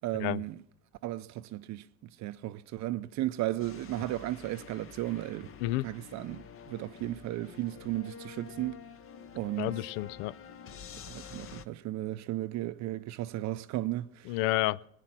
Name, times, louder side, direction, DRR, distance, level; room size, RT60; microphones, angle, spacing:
voice 1, 0.0-0.6 1.0-1.9 2.2-5.5 5.8-8.8 9.3-9.8 11.1-14.4, right 15 dB, 55° right, 0.6 m, -35 dB
sound 1, 3.6-11.6, left 7 dB, 40° left, 0.8 m, -48 dB
voice 2, 9.6-10.3 14.3-14.9, left 17 dB, 75° left, 0.5 m, -30 dB
20.0 x 9.8 x 6.0 m
supercardioid pair, 95°, 33 cm